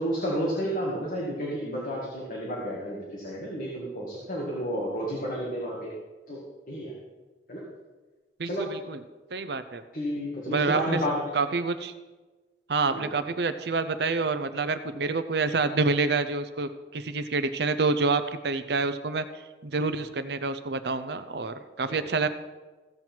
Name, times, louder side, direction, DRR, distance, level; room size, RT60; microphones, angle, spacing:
voice 1, 0.0-5.9 6.3-6.9 7.5-7.6 8.4-8.8 9.9-11.2 12.9-13.1 21.9-22.1, equal, 45° left, -4 dB, 2.0 m, -31 dB
voice 2, 8.4-9.0 9.3-9.8 10.5-11.0 11.3-11.9 12.7-19.2 19.6-22.3, right 3 dB, 60° right, 10 dB, 0.7 m, -27 dB
15.5 x 7.6 x 4.5 m, 1.2 s
head